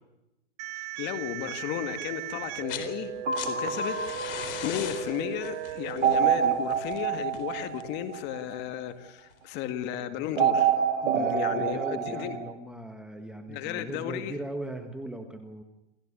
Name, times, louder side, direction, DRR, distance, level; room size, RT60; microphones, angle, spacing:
sound 1, 0.6-6.6, right 14 dB, 35° right, 1.1 m, -37 dB
voice 1, 0.8-3.1 3.4-12.4 13.5-14.4, left 10 dB, 30° left, 9 dB, 2.1 m, -34 dB
sound 2, 2.4-2.9 3.2-8.0 9.3-9.4, left 10 dB, 50° left, 4.2 m, -40 dB
sound 3, 3.3-5.0 6.0-8.5 10.4-12.5, right 8 dB, 70° right, 2.2 m, -27 dB
voice 2, 11.1-15.6, right 1 dB, ahead, 6 dB, 1.5 m, -38 dB
28.0 x 15.0 x 10.0 m, 0.94 s
hypercardioid pair, 145°, 36 cm